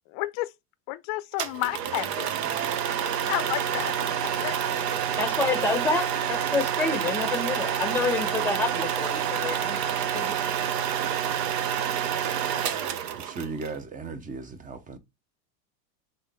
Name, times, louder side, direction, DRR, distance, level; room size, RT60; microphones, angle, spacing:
voice 1, 0.1-0.5 0.9-2.4 3.3-4.1 4.4-4.5, left 17 dB, 45° left, 0.5 m, -31 dB
sound 1, 1.4-13.7, right 9 dB, 75° right, 0.8 m, -28 dB
voice 2, 5.2-9.8 10.1-10.3, left 3 dB, 5° left, 0.9 m, -28 dB
voice 3, 13.1-15.0, right 4 dB, 15° right, 0.6 m, -36 dB
3.8 x 3.6 x 3.4 m
supercardioid pair, 120°, 49 cm